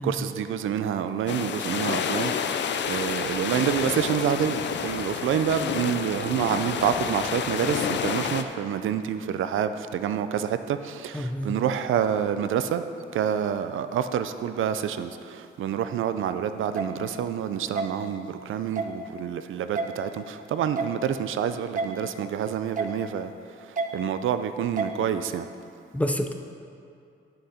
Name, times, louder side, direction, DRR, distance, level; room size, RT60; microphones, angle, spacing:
voice 1, 0.0-12.9 13.1-23.3 23.6-25.5, right 9 dB, 75° right, 10 dB, 0.5 m, -28 dB
sound 1, 1.3-8.4, left 7 dB, 65° left, 0.5 m, -29 dB
voice 2, 11.1-11.5 25.9-26.3, left 1 dB, 5° left, 5 dB, 0.5 m, -28 dB
sound 2, 16.8-16.9 17.8-17.9 18.8-18.9 19.8-19.9 20.8-20.9 21.8-21.9 22.8-22.9 23.8-23.9 24.8-24.9, right 4 dB, 40° right, 0.7 m, -28 dB
11.5 x 6.6 x 4.2 m, 2.5 s
cardioid pair, 125°, 21 cm